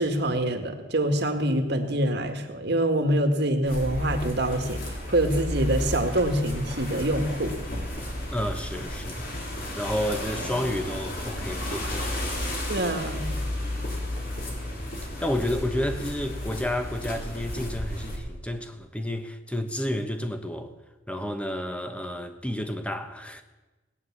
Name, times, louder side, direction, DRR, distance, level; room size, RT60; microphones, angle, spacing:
voice 1, 0.0-7.5 12.7-13.4, right 1 dB, 65° right, 1.8 m, -25 dB
sound 1, 3.7-18.2, left 1 dB, 55° left, 3.6 m, -33 dB
voice 2, 8.3-9.2 9.8-12.5 13.4-14.0 14.7-20.7 21.1-23.4, left 1 dB, 5° left, 1.1 m, -31 dB
18.0 x 9.7 x 7.3 m
head